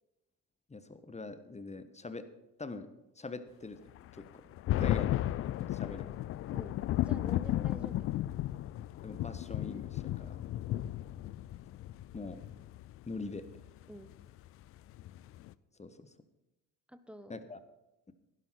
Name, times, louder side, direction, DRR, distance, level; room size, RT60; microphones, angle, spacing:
voice 1, 0.7-2.3 2.6-2.9 3.2-3.8 4.1-4.4 4.8-5.1 5.7-6.2 9.0-10.4 12.1-12.4 13.1-13.5 15.8-16.1 17.3-17.6, left 3 dB, 15° left, 12 dB, 1.1 m, -43 dB
sound 1, 4.0-15.5, left 14 dB, 30° left, 0.3 m, -34 dB
voice 2, 6.5-8.2 10.7-10.9 13.9-14.1 16.9-17.4, equal, ahead, 12 dB, 0.9 m, -48 dB
16.0 x 11.5 x 4.4 m, 0.97 s
figure-of-eight pair, 50°, 50 cm